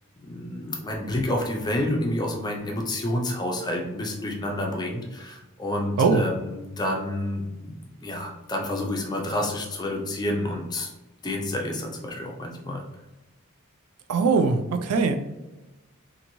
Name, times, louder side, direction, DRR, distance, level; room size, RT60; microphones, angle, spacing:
voice 1, 0.2-7.7 8.0-10.9 11.2-12.8, left 1 dB, 20° left, 1 dB, 0.4 m, -29 dB
voice 2, 14.1-15.2, right 4 dB, 80° right, 5 dB, 0.4 m, -21 dB
2.9 x 2.6 x 2.6 m, 1.0 s
head